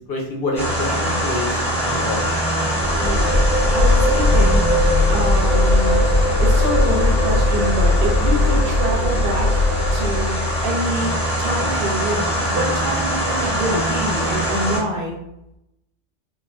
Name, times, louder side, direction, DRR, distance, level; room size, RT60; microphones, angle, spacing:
voice 1, 0.1-2.2, left 2 dB, 65° left, -1 dB, 0.7 m, -27 dB
sound 1, 0.6-14.8, equal, 5° left, 0.7 m, -23 dB
sound 2, 2.8-10.7, left 2 dB, 85° left, 1.0 m, -18 dB
voice 2, 3.0-4.6 5.1-6.0 6.4-9.5 9.9-10.3 10.6-11.1 11.4-15.2, right 1 dB, 60° right, -2 dB, 0.6 m, -26 dB
3.2 x 2.3 x 2.3 m, 0.86 s
omnidirectional pair, 1.2 m